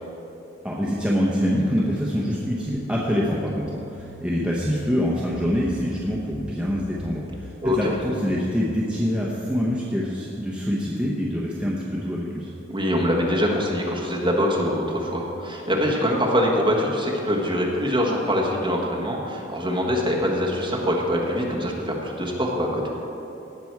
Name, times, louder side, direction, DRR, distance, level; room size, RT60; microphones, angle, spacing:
voice 1, 0.6-12.5, equal, 5° right, -5 dB, 0.9 m, -25 dB
sound 1, 2.7-8.0, left 2 dB, 70° left, 0.7 m, -43 dB
voice 2, 12.7-22.8, equal, 25° right, -2 dB, 1.5 m, -24 dB
17.5 x 6.1 x 4.7 m, 2.9 s
head